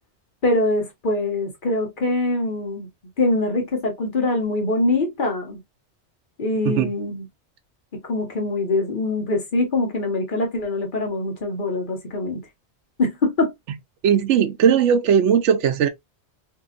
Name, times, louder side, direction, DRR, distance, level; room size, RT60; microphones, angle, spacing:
voice 1, 0.4-2.9 3.2-5.6 6.4-7.2 8.0-12.4 13.0-13.5, left 2 dB, 50° left, 1.1 m, -23 dB
voice 2, 14.0-15.9, right 8 dB, 85° right, 0.9 m, -18 dB
2.7 x 2.6 x 2.4 m
omnidirectional pair, 1.2 m